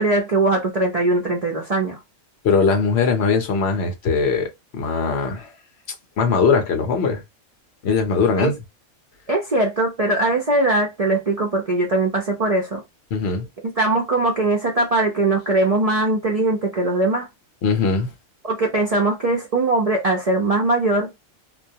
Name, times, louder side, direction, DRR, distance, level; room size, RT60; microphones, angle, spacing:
voice 1, 0.0-2.0 8.4-8.5 9.3-12.8 13.6-17.3 18.4-21.1, right 2 dB, 50° right, 0.4 m, -20 dB
voice 2, 2.4-5.5 6.2-7.2 7.8-8.5 13.1-13.5 17.6-18.1, left 5 dB, 60° left, 0.8 m, -20 dB
2.2 x 2.1 x 2.6 m
omnidirectional pair, 1.3 m